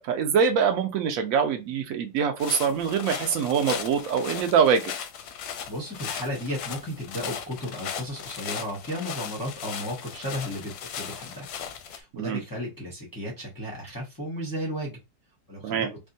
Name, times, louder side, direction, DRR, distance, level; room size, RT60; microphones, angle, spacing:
voice 1, 0.0-4.9 12.1-12.4 15.6-15.9, right 7 dB, 85° right, 0.7 m, -24 dB
sound 1, 2.4-12.0, left 8 dB, 70° left, 0.9 m, -37 dB
voice 2, 5.7-11.5 11.8-15.0 15.5-15.9, equal, 25° left, 0.5 m, -34 dB
3.4 x 2.3 x 2.6 m
omnidirectional pair, 2.0 m